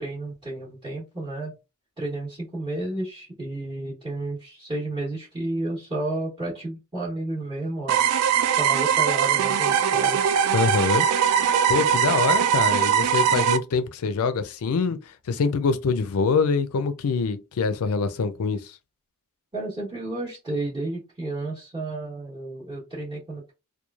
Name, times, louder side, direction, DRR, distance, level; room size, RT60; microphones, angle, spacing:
voice 1, 0.0-1.5 2.0-8.0 8.6-10.2 19.5-23.5, right 2 dB, 20° right, 1.0 m, -32 dB
sound 1, 7.9-13.6, right 8 dB, 85° right, 0.3 m, -21 dB
voice 2, 10.5-11.1 11.7-15.0 15.3-18.7, left 5 dB, 70° left, 0.4 m, -24 dB
3.0 x 2.3 x 2.3 m
head